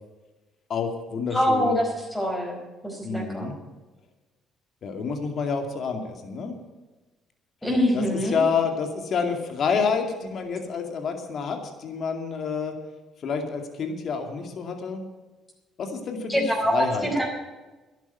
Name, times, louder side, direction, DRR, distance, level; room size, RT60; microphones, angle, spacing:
voice 1, 0.7-1.7 3.0-3.6 4.8-6.6 7.9-12.7 13.2-15.0 15.8-17.1, left 5 dB, 60° left, 5 dB, 2.4 m, -28 dB
voice 2, 1.3-2.6 2.8-3.5 7.6-8.4 16.3-17.3, equal, 10° left, -1 dB, 4.8 m, -24 dB
11.5 x 9.1 x 9.4 m, 1.2 s
supercardioid pair, 60°, 0 cm